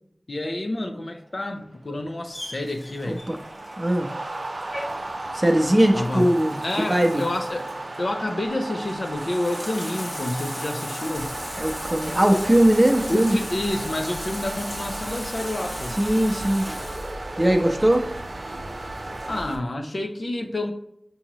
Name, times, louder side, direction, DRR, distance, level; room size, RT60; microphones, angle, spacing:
voice 1, 0.3-3.2 5.9-6.2 6.6-7.6 8.0-11.3 13.1-16.0 19.3-20.7, left 1 dB, 70° left, 4 dB, 0.6 m, -28 dB
sound 1, 1.6-19.4, right 2 dB, 80° right, 0.4 m, -36 dB
Bathtub (filling or washing), 2.3-17.1, equal, 35° left, 1.0 m, -38 dB
voice 2, 3.0-3.4 3.8-4.1 5.3-6.6 6.9-7.2 11.6-13.4 16.0-16.6 17.4-18.1, right 1 dB, 25° right, 3 dB, 0.6 m, -20 dB
sound 2, 11.2-19.6, right 1 dB, 50° right, 0.9 m, -39 dB
6.0 x 2.8 x 2.9 m, 0.76 s
wide cardioid pair, 60°, 0 cm